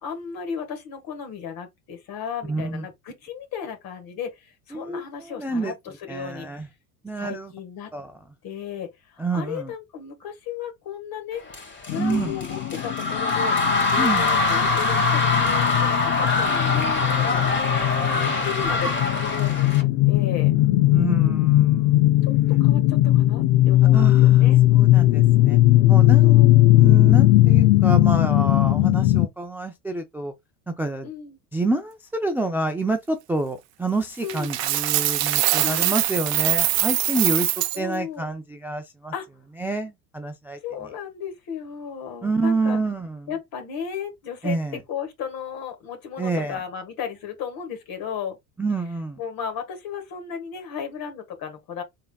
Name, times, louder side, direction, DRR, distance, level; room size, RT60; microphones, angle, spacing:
voice 1, 0.0-5.7 6.0-6.6 7.2-7.9 8.4-17.6 18.1-20.5 22.2-24.6 26.2-26.5 31.0-31.4 34.2-34.5 35.6-36.0 37.7-38.3 39.1-39.3 40.6-42.8 43.3-48.4 49.2-51.8, left 7 dB, 50° left, 1.6 m, -35 dB
voice 2, 2.5-2.8 4.7-5.0 5.4-5.7 6.1-6.7 7.0-7.5 7.9-8.1 9.2-9.7 11.9-12.3 14.0-14.3 18.1-18.5 20.9-22.0 23.9-25.6 25.9-26.4 26.7-30.3 30.8-31.1 31.5-39.1 39.6-40.6 42.2-43.2 44.4-44.8 46.2-46.6 48.6-49.2, right 2 dB, 5° right, 0.4 m, -28 dB
sound 1, 11.5-19.8, left 3 dB, 25° left, 1.5 m, -24 dB
sound 2, 11.9-29.3, left 16 dB, 70° left, 0.5 m, -18 dB
Coin (dropping), 34.3-37.8, right 13 dB, 85° right, 0.7 m, -23 dB
3.8 x 3.3 x 2.3 m
hypercardioid pair, 85°, 46 cm